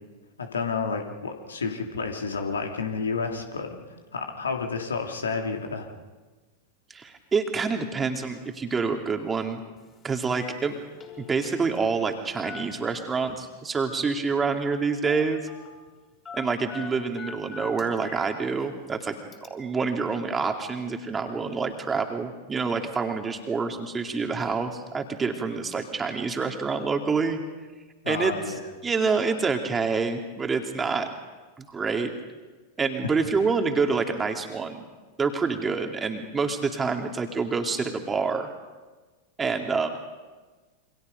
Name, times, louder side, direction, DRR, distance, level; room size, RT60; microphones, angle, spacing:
voice 1, 0.4-3.8 4.1-5.9 28.0-28.6, left 5 dB, 70° left, 3 dB, 3.1 m, -30 dB
voice 2, 6.9-9.6 10.0-10.8 11.2-15.4 16.3-27.4 28.1-28.3 28.8-31.1 31.6-32.1 32.8-34.8 35.2-38.5 39.4-39.9, right 4 dB, 15° right, 4 dB, 2.7 m, -27 dB
Telephone, 9.8-9.9 10.2-10.6 10.8-12.1 12.4-13.4 14.5-14.8 15.0-15.7 16.2-18.2 18.6-18.7 19.3-19.5, left 5 dB, 20° left, 5.2 m, -42 dB
28.5 x 26.0 x 5.3 m, 1.3 s
figure-of-eight pair, 90°, 0 cm